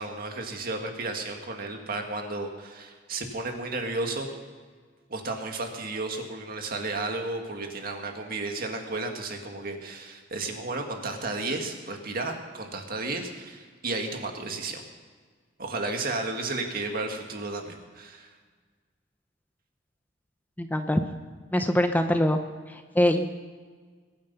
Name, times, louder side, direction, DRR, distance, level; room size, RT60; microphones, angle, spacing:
voice 1, 0.0-4.3 5.1-14.8 15.6-18.3, right 2 dB, 50° right, 3 dB, 1.9 m, -33 dB
voice 2, 20.6-21.0 21.5-22.4 22.7-23.3, left 1 dB, 10° left, 7 dB, 0.7 m, -23 dB
22.0 x 9.3 x 5.5 m, 1.5 s
head